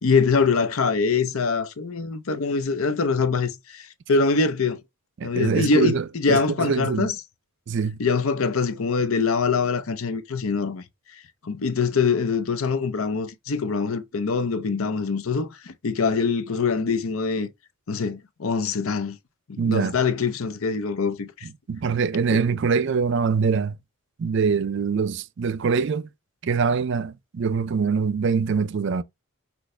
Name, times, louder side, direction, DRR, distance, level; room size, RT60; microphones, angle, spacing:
voice 1, 0.0-4.8 5.2-7.1 8.0-10.8 11.4-17.5 17.9-19.2 19.5-21.5 22.3-22.4, left 4 dB, 70° left, 0.6 m, -24 dB
voice 2, 5.2-7.1 7.7-8.0 19.6-20.0 21.4-23.8 24.2-26.1 26.4-29.0, right 5 dB, 55° right, 0.4 m, -24 dB
6.0 x 2.6 x 3.2 m
head